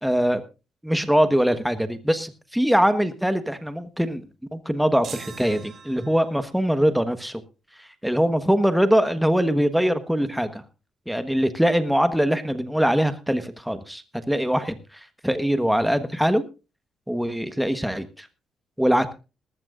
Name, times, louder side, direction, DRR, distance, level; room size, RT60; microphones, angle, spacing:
voice 1, 0.0-0.4 0.8-4.2 4.5-7.4 7.8-10.6 11.1-16.4 17.1-18.3 18.8-19.1, equal, ahead, 10 dB, 1.3 m, -22 dB
sound 1, 5.0-6.5, right 6 dB, 55° right, 2.2 m, -41 dB
19.5 x 14.5 x 2.5 m, 0.31 s
cardioid pair, 90°, 0 cm